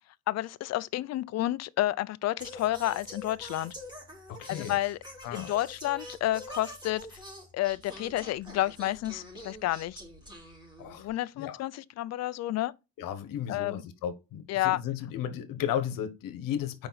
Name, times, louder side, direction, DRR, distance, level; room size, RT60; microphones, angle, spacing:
voice 1, 0.3-3.7 4.5-5.0 5.3-7.1 7.5-10.0 11.0-12.7 13.5-13.8 14.5-14.8, left 15 dB, 55° left, 0.5 m, -30 dB
Singing, 2.4-11.1, left 1 dB, 15° right, 3.2 m, -46 dB
voice 2, 4.3-4.8 5.2-5.5 10.8-11.1 11.3-11.7 13.0-16.9, left 9 dB, 90° left, 1.2 m, -34 dB
7.0 x 5.1 x 4.0 m
cardioid pair, 155°, 32 cm